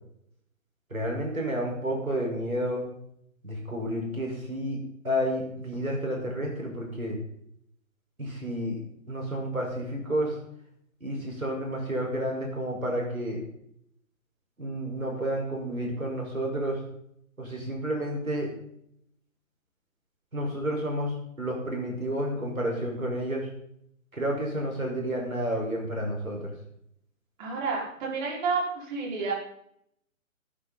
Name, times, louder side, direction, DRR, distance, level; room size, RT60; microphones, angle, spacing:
voice 1, 0.9-2.8 3.4-4.8 5.0-7.2 8.2-8.8 9.1-10.3 11.0-13.4 14.6-16.8 17.4-18.5 20.3-23.5 24.1-26.5, equal, 80° right, 0 dB, 5.5 m, -30 dB
voice 2, 27.4-29.3, right 4 dB, 35° right, -3 dB, 5.5 m, -30 dB
19.5 x 9.7 x 4.2 m, 0.70 s
figure-of-eight pair, 130°, 41 cm